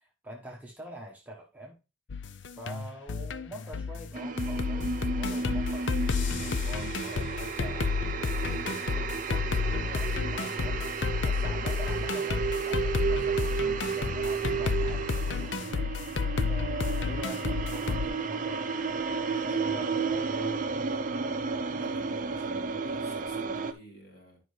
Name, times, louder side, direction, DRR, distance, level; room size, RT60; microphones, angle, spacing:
voice 1, 0.0-1.8 2.6-7.9 8.3-15.8 16.1-21.1, right 1 dB, 10° right, 1.1 m, -45 dB
sound 1, 2.1-18.1, left 5 dB, 70° left, 0.6 m, -31 dB
sound 2, 4.1-23.7, right 5 dB, 45° right, 0.6 m, -32 dB
voice 2, 21.7-24.4, right 1 dB, 55° left, 3.5 m, -51 dB
10.5 x 5.4 x 3.2 m
head